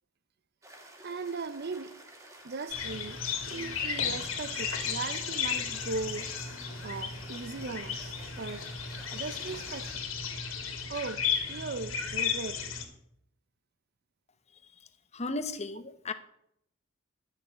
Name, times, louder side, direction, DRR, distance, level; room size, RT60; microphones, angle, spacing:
sound 1, 0.6-9.9, right 1 dB, 15° right, 2.0 m, -52 dB
voice 1, 1.0-2.0 2.4-6.3 6.8-8.7 9.1-10.0 10.9-12.7, right 3 dB, 50° right, 0.6 m, -38 dB
sound 2, 2.7-12.8, left 7 dB, 80° left, 2.6 m, -34 dB
voice 2, 15.1-16.1, left 3 dB, 30° left, 1.0 m, -35 dB
12.5 x 6.9 x 8.1 m
head